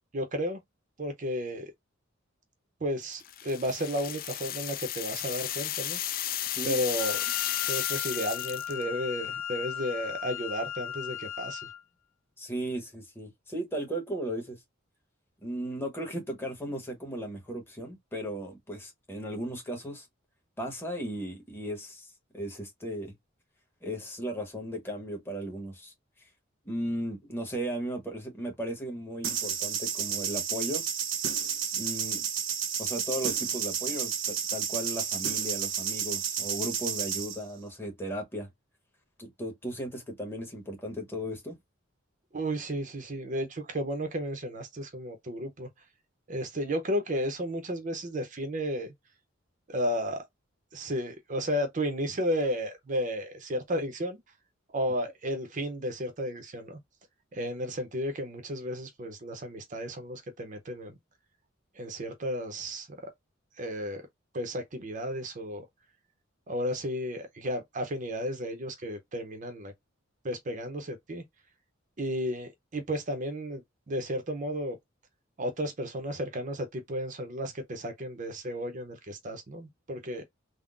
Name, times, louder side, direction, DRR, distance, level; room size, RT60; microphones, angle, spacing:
voice 1, 0.1-0.6 1.0-1.7 2.8-6.0 6.7-7.2 7.7-11.6 42.3-45.7 46.3-48.9 49.7-50.2 50.7-54.2 54.7-56.8 57.3-60.9 61.7-63.1 63.6-64.1 64.3-65.6 66.5-69.7 70.2-71.2 72.0-74.8 75.4-80.2, equal, 40° right, 0.6 m, -33 dB
sound 1, 3.2-8.8, left 12 dB, 45° left, 0.3 m, -33 dB
Wind instrument woodwind instrument, 7.0-11.8, left 10 dB, 75° left, 0.7 m, -37 dB
voice 2, 12.4-14.6 15.4-20.1 20.6-22.1 22.3-23.1 23.8-25.9 26.6-30.8 31.7-32.2 32.8-38.5 39.2-41.6, right 1 dB, 10° left, 1.0 m, -36 dB
sound 2, 29.2-37.4, right 7 dB, 75° right, 0.8 m, -31 dB
3.6 x 2.0 x 2.4 m
head